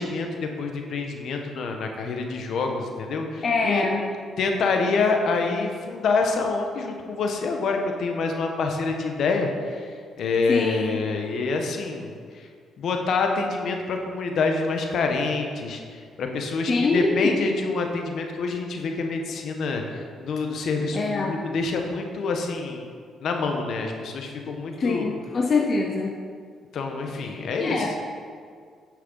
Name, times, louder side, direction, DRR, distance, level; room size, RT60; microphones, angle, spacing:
voice 1, 0.0-3.9 4.4-9.9 10.2-12.5 12.8-22.9 23.2-25.1 26.7-27.9, left 4 dB, 65° left, 3 dB, 1.3 m, -26 dB
voice 2, 3.4-4.0 10.5-11.0 16.7-17.3 20.9-21.4 24.8-26.1 27.2-27.9, left 3 dB, 45° left, 1 dB, 0.9 m, -24 dB
10.0 x 6.4 x 5.6 m, 2.1 s
cardioid pair, 90°, 0 cm